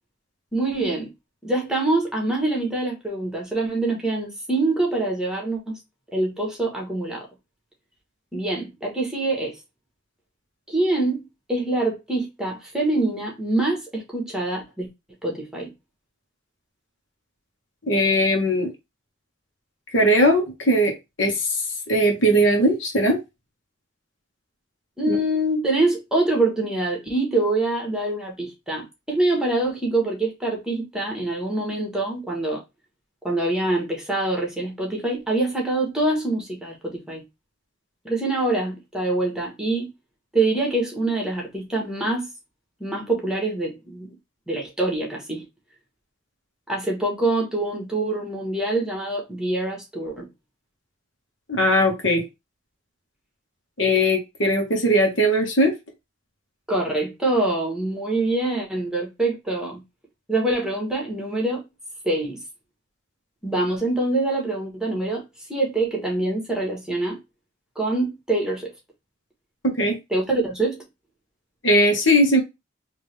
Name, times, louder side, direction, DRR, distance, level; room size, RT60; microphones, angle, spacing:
voice 1, 0.5-1.1 1.4-5.8 6.1-7.3 8.3-9.5 10.7-14.9 15.2-15.7 25.0-32.6 33.2-37.2 38.0-39.9 40.3-42.3 42.8-44.1 44.5-45.5 46.7-50.3 56.7-59.8 60.3-61.6 62.0-62.4 63.4-65.2 65.5-67.2 67.7-68.7 70.1-70.8, right 2 dB, 5° right, 1.3 m, -25 dB
voice 2, 17.9-18.7 19.9-21.5 21.9-23.2 25.1-25.2 51.5-52.2 53.8-55.7 69.6-70.0 71.6-72.4, equal, 70° left, 1.4 m, -19 dB
3.7 x 2.9 x 3.2 m
head